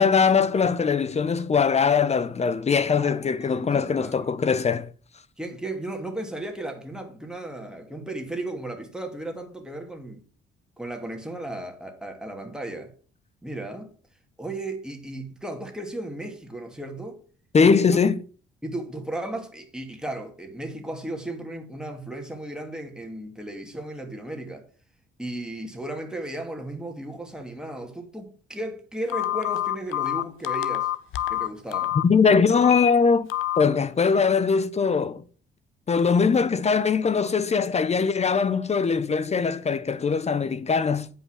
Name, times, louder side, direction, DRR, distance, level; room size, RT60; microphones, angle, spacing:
voice 1, 0.0-4.9 17.5-18.2 32.0-33.3 33.6-35.2 35.9-41.1, left 5 dB, 35° left, 0.7 m, -21 dB
voice 2, 3.0-4.3 5.4-10.2 10.8-12.9 13.4-13.9 14.4-17.2 17.7-18.0 18.6-24.6 25.2-30.9 31.3-32.0, right 1 dB, 5° right, 2.5 m, -35 dB
Telephone, 29.1-32.0 32.6-32.9 33.3-33.6, left 14 dB, 85° left, 0.8 m, -26 dB
9.3 x 5.6 x 6.3 m
cardioid pair, 90°, 20 cm